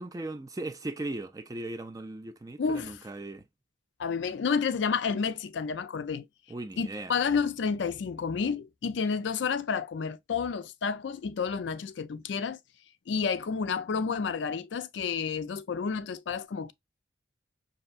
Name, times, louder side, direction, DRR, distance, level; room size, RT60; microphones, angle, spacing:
voice 1, 0.0-3.5 6.5-7.1, right 2 dB, 20° right, 0.3 m, -38 dB
voice 2, 2.6-3.0 4.0-6.3 6.8-12.6 13.1-16.7, left 5 dB, 70° left, 0.4 m, -30 dB
5.3 x 2.6 x 2.4 m
head